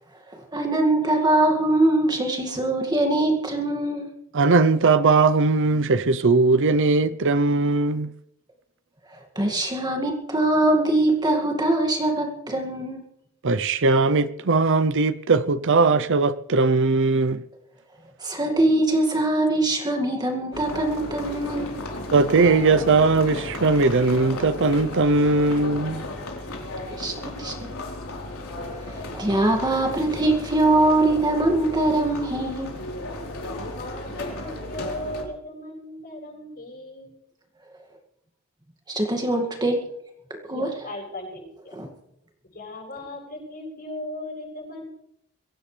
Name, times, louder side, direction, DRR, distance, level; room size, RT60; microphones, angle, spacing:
voice 1, 0.3-4.1 9.1-13.0 18.2-21.7 27.0-27.7 28.7-32.8 38.9-39.9 40.4-40.7 41.7-41.9, right 2 dB, 20° right, 2.1 m, -23 dB
voice 2, 4.3-8.1 13.4-17.4 22.1-26.0, right 3 dB, 60° right, 0.7 m, -19 dB
sound 1, 20.5-35.2, left 1 dB, 75° left, 4.0 m, -34 dB
voice 3, 33.4-37.1 40.5-41.7 42.5-44.9, left 1 dB, 45° left, 8.0 m, -37 dB
23.0 x 17.0 x 3.4 m
head